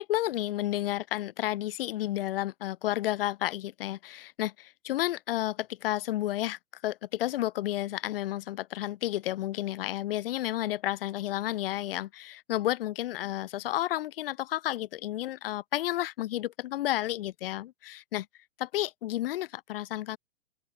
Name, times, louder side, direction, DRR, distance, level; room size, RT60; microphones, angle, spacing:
voice 1, 0.0-18.3 18.6-20.2, left 14 dB, 50° left, 1.6 m, -31 dB
open air
hypercardioid pair, 130°, 35 cm